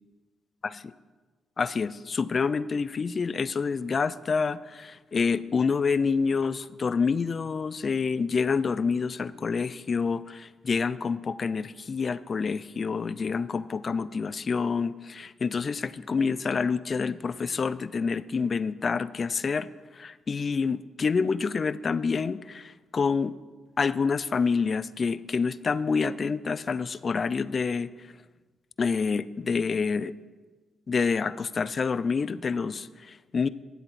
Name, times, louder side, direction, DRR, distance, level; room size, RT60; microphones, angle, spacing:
voice 1, 1.6-19.7 19.9-23.4 23.8-27.9 28.8-30.1 30.9-33.5, left 5 dB, 45° left, 17 dB, 0.4 m, -27 dB
10.0 x 8.0 x 4.2 m, 1.3 s
hypercardioid pair, 45°, 0 cm